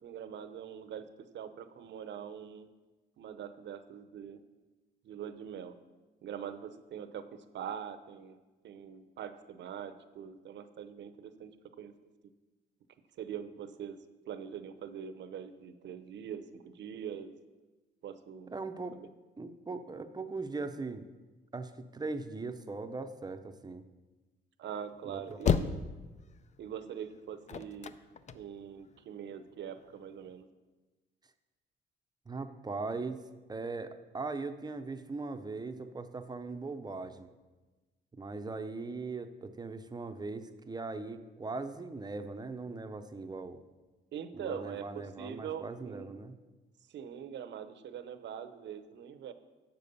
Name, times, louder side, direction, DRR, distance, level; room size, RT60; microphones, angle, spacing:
voice 1, 0.0-2.7 3.2-4.4 5.0-5.7 6.2-8.4 8.6-11.5 11.8-11.9 13.2-14.0 14.2-17.3 18.0-18.5 18.9-19.1 24.6-25.7 26.6-27.9 28.3-30.4 44.1-46.2 46.9-49.3, right 8 dB, 65° right, 11 dB, 0.7 m, -43 dB
voice 2, 18.5-19.0 19.4-21.1 21.5-23.8 25.1-25.7 32.3-33.2 33.5-37.3 38.1-43.6 44.3-46.4, right 3 dB, 20° right, 8 dB, 0.6 m, -40 dB
sound 1, 24.7-29.0 29.5-30.4, left 7 dB, 35° left, 0.4 m, -33 dB
7.5 x 6.8 x 5.4 m, 1.2 s
cardioid pair, 90°, 20 cm